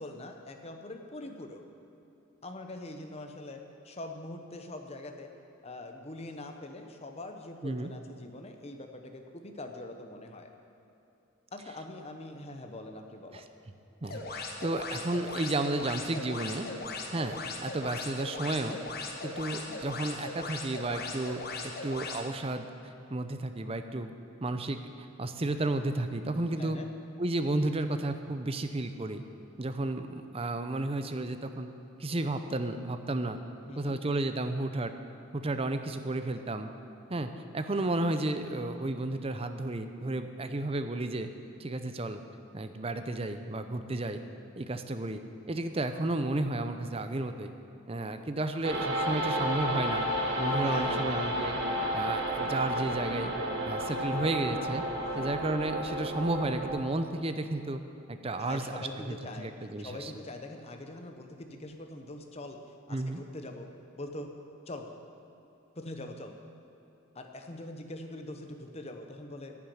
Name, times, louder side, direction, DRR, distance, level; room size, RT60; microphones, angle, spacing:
voice 1, 0.0-1.6 2.4-5.3 5.6-10.5 11.5-13.4 26.6-26.9 33.7-34.0 50.6-51.5 58.4-59.5 59.8-62.6 62.9-63.7 64.0-64.3 64.7-64.9 65.8-66.4 67.1-69.5, left 2 dB, 30° left, 4 dB, 0.9 m, -43 dB
sound 1, 14.0-22.2, left 3 dB, 45° left, 1.2 m, -39 dB
voice 2, 14.0-16.7 17.1-17.4 17.6-18.8 19.2-22.7 23.1-24.1 24.4-26.8 27.2-29.2 29.6-31.7 32.0-33.4 33.8-34.9 35.3-36.7 37.1-41.3 41.6-42.2 42.5-44.2 44.6-45.2 45.5-47.5 47.9-50.1 50.4-51.6 51.9-53.3 53.6-54.8 55.1-57.8 58.1-60.1 62.9-63.2, right 2 dB, 25° right, 8 dB, 0.6 m, -32 dB
sound 2, 48.6-56.8, equal, 55° right, 1.4 m, -32 dB
10.5 x 7.4 x 9.6 m, 2.8 s
head